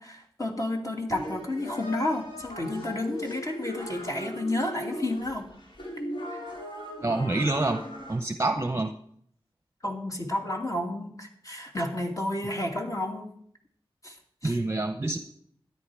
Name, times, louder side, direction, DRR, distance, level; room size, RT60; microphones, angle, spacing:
voice 1, 0.0-5.4 9.8-13.3 14.0-14.2 14.4-14.5, left 1 dB, 35° left, 1 dB, 2.6 m, -31 dB
sound 1, 1.1-8.2, equal, 60° left, 4.0 m, -38 dB
voice 2, 7.0-7.8 8.1-8.9 14.4-15.2, right 2 dB, 30° right, 7 dB, 0.8 m, -27 dB
13.0 x 10.5 x 4.8 m, 0.66 s
wide cardioid pair, 50°, 10 cm